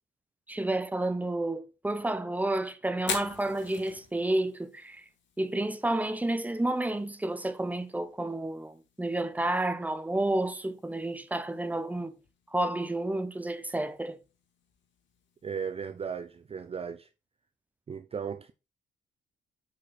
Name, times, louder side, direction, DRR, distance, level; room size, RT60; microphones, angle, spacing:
voice 1, 0.5-5.0 5.4-12.2 12.5-14.2, right 1 dB, 10° right, 0.8 m, -30 dB
Fire, 2.9-16.8, left 6 dB, 65° left, 2.1 m, -46 dB
voice 2, 15.4-17.1 17.9-18.5, right 6 dB, 30° right, 0.5 m, -36 dB
6.0 x 5.3 x 3.9 m
cardioid pair, 90°, 20 cm